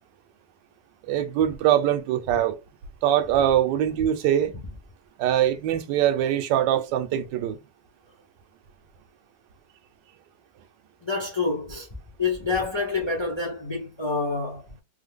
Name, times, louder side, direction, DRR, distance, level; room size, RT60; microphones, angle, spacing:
voice 1, 1.1-2.6 3.0-4.5 5.2-7.6, right 11 dB, 75° right, 1.2 m, -23 dB
voice 2, 11.0-11.9 12.2-14.6, left 4 dB, 40° left, 0.4 m, -27 dB
3.4 x 2.0 x 3.5 m
omnidirectional pair, 2.0 m